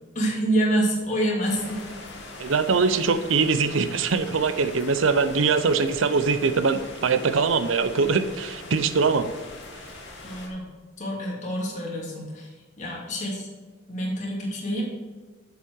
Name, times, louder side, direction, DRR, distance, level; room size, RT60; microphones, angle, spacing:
voice 1, 0.1-1.8 10.2-10.6 11.0-12.5 12.8-13.5 13.9-14.9, right 1 dB, 40° left, -3 dB, 2.5 m, -27 dB
sound 1, 1.4-10.5, left 2 dB, 65° left, 2.0 m, -42 dB
voice 2, 2.4-9.3, right 4 dB, 80° right, 11 dB, 0.6 m, -22 dB
7.3 x 7.3 x 4.6 m, 1.4 s
head